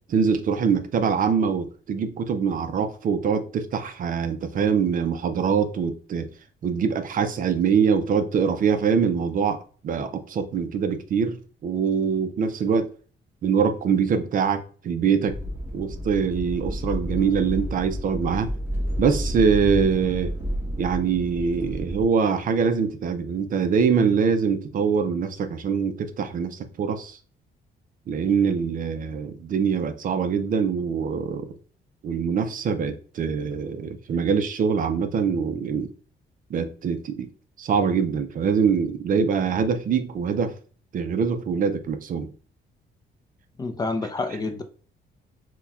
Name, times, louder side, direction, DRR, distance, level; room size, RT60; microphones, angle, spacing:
voice 1, 0.1-6.3 6.6-12.9 13.4-15.4 15.7-18.5 19.0-20.3 20.8-27.2 28.1-31.5 32.0-35.9 36.5-37.3 37.6-40.5 40.9-42.3, right 6 dB, 45° right, 0.4 m, -24 dB
sound 1, 15.2-22.1, equal, 10° right, 1.1 m, -30 dB
voice 2, 43.6-44.6, left 3 dB, 20° left, 0.4 m, -28 dB
5.5 x 2.2 x 2.3 m
cardioid pair, 145°, 19 cm